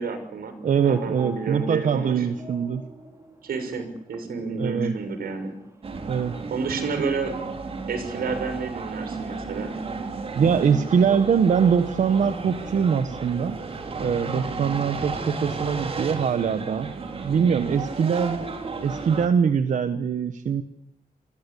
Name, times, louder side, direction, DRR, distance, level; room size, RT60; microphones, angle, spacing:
voice 1, 0.0-0.5 0.8-2.3 3.4-5.5 6.5-7.4 7.9-9.7, right 4 dB, 85° right, 9 dB, 6.4 m, -30 dB
voice 2, 0.6-2.8 4.6-4.9 6.1-6.4 10.3-13.6 14.0-16.9 17.2-18.5 18.8-20.6, right 7 dB, 55° right, 10 dB, 1.3 m, -23 dB
sound 1, 0.8-19.5, right 1 dB, 20° right, 5.0 m, -47 dB
sound 2, 5.8-19.3, right 4 dB, 40° right, 3.8 m, -33 dB
28.5 x 22.0 x 8.5 m, 0.79 s
wide cardioid pair, 175°, 15 cm